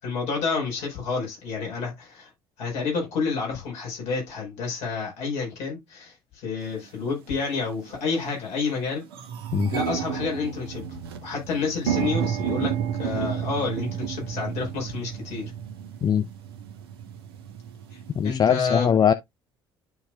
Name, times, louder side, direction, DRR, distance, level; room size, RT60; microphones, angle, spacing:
voice 1, 0.0-2.3 2.6-9.0 9.7-10.8 11.2-12.7 13.0-15.5 17.9-18.9, left 4 dB, 60° left, 4.7 m, -29 dB
sound 1, 6.8-6.9 7.6-7.9 8.3-8.4 8.6-18.3, right 9 dB, 75° right, 1.0 m, -31 dB
voice 2, 18.2-19.1, left 8 dB, 35° left, 0.5 m, -21 dB
12.0 x 4.2 x 2.3 m
figure-of-eight pair, 55°, 13 cm